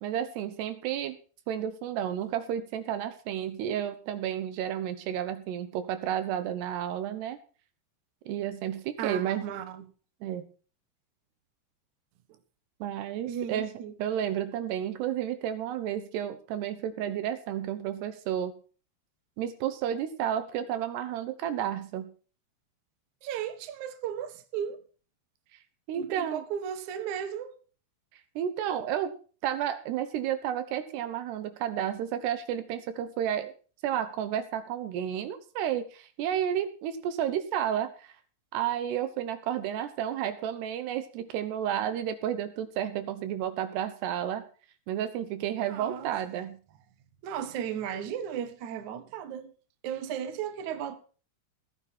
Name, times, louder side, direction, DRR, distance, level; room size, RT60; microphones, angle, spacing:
voice 1, 0.0-1.2 1.5-7.4 8.3-9.5 10.2-10.4 12.8-13.7 14.0-18.5 19.4-22.1 25.9-26.4 28.4-29.1 29.4-33.5 33.8-38.1 38.5-44.4 44.9-46.6, right 10 dB, 75° right, 3.1 m, -31 dB
voice 2, 9.0-9.9 13.3-13.9 23.2-24.8 25.9-27.6 45.6-46.1 47.2-49.5 49.8-51.0, right 9 dB, 55° right, 2.4 m, -35 dB
18.5 x 10.0 x 4.4 m
omnidirectional pair, 4.9 m